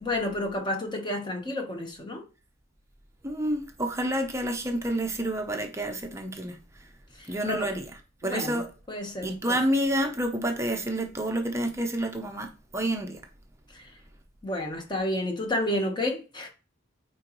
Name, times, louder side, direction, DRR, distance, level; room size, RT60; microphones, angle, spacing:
voice 1, 0.0-2.2 7.2-7.7 8.2-8.6 8.9-9.6 14.4-16.5, left 1 dB, 20° left, 1.1 m, -30 dB
voice 2, 3.2-6.6 7.3-7.9 8.2-8.7 9.2-13.2, right 1 dB, 15° right, 0.7 m, -29 dB
9.1 x 3.8 x 3.0 m
head